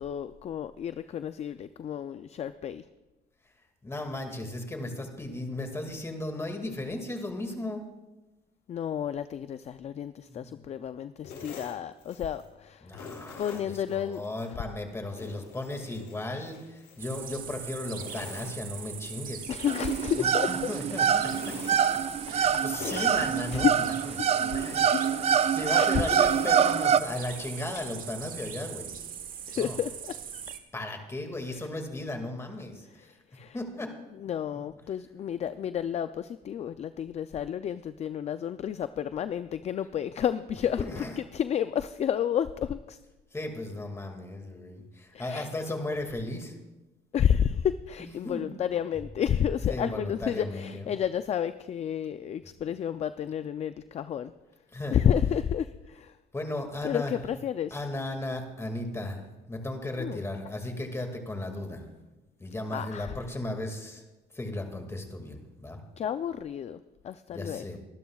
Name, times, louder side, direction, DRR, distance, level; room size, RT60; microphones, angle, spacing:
voice 1, 0.0-2.8 8.7-13.1 13.4-14.2 19.5-20.5 22.9-23.2 23.5-23.7 24.1-25.0 25.6-26.2 29.5-30.4 31.5-31.6 33.0-33.6 34.2-43.0 45.1-45.5 47.1-54.3 54.9-56.2 56.8-57.8 60.0-60.2 62.7-63.1 66.0-67.7, left 9 dB, 40° left, 12 dB, 0.4 m, -31 dB
voice 2, 3.8-7.8 10.3-10.6 12.8-19.5 20.2-21.5 22.3-23.8 24.4-24.8 25.3-28.9 29.6-29.8 30.7-33.1 33.5-33.9 40.8-41.2 43.3-46.5 48.0-48.5 49.7-50.9 54.7-55.0 56.3-57.1 57.7-59.2 59.5-61.8 62.4-64.0 64.3-65.8 67.3-67.8, left 1 dB, 15° left, 4 dB, 2.1 m, -36 dB
sound 1, 11.2-12.5 12.9-14.5 14.9-17.6 17.9-19.2 19.5-20.8 21.2-22.5 22.8-24.1 24.5-28.0, left 4 dB, 80° left, 4.0 m, -46 dB
sound 2, 17.0-30.6, right 8 dB, 55° right, 1.3 m, -41 dB
sound 3, 19.7-27.0, right 8 dB, 40° right, 0.5 m, -25 dB
23.5 x 12.0 x 2.4 m, 1.1 s
cardioid pair, 110°, 17 cm